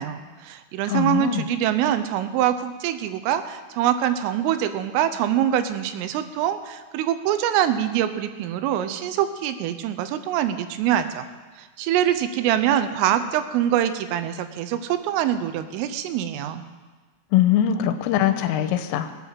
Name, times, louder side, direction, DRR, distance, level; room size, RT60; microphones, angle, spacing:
voice 1, 0.0-11.3 11.6-16.6, right 11 dB, 85° right, 10 dB, 3.4 m, -24 dB
voice 2, 0.9-1.4 17.3-19.2, left 11 dB, 85° left, 9 dB, 3.4 m, -22 dB
19.5 x 8.4 x 7.3 m, 1.3 s
omnidirectional pair, 5.8 m